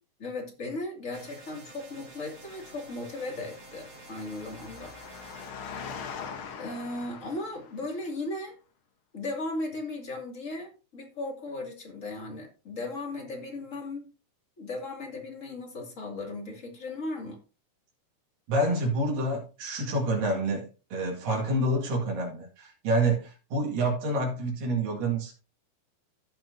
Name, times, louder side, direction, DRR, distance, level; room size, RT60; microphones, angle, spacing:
voice 1, 0.2-4.9 6.6-8.6 9.1-14.1 14.6-17.4, left 2 dB, 25° left, 1 dB, 2.1 m, -36 dB
sound 1, 1.1-5.5, right 3 dB, 30° right, 1.9 m, -50 dB
Engine, 2.3-8.0, left 6 dB, 75° left, 1.2 m, -43 dB
voice 2, 18.5-25.3, right 1 dB, 75° right, -1 dB, 3.8 m, -28 dB
15.5 x 5.9 x 2.7 m, 0.32 s
omnidirectional pair, 4.0 m